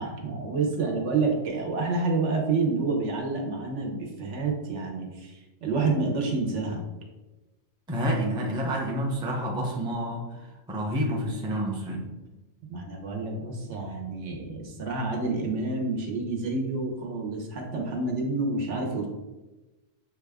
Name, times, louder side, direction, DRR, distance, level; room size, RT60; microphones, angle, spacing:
voice 1, 0.0-6.8 12.7-19.1, right 3 dB, 80° right, 1 dB, 1.2 m, -28 dB
voice 2, 7.9-10.2 10.7-12.1, equal, 5° right, -1 dB, 0.4 m, -28 dB
6.5 x 2.3 x 3.4 m, 1.1 s
omnidirectional pair, 1.2 m